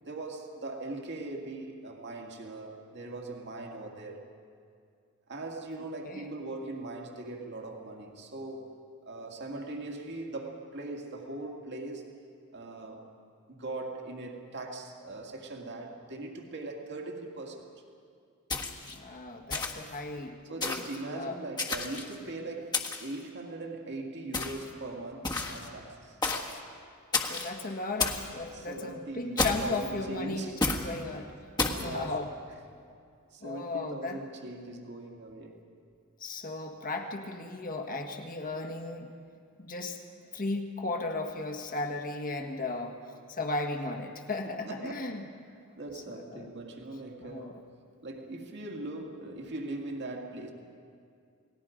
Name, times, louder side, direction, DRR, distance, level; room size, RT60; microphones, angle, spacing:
voice 1, 0.0-4.2 5.3-8.8 9.0-12.2 12.5-13.1 13.5-17.7 20.5-26.2 28.5-30.7 31.7-32.2 33.3-35.6 44.7-45.0 45.8-47.6 48.0-50.5, right 2 dB, 50° right, 2 dB, 2.1 m, -40 dB
sound 1, 18.5-19.0 19.5-19.9 20.6-21.0 21.6-22.1 22.7-23.1 24.3-24.7 25.2-25.7 26.2-26.6 27.1-27.5 28.0-28.3 29.4-29.8 30.6-30.9 31.6-31.9, left 3 dB, 20° left, 1.6 m, -31 dB
voice 2, 18.9-21.4 27.2-30.5 30.8-31.3 31.8-32.3 33.4-34.2 36.2-39.1 39.6-40.0 40.3-42.9 43.3-45.2 46.1-46.5 47.2-47.6, left 2 dB, 40° left, 4 dB, 1.7 m, -36 dB
29.5 x 19.0 x 5.2 m, 2.4 s
head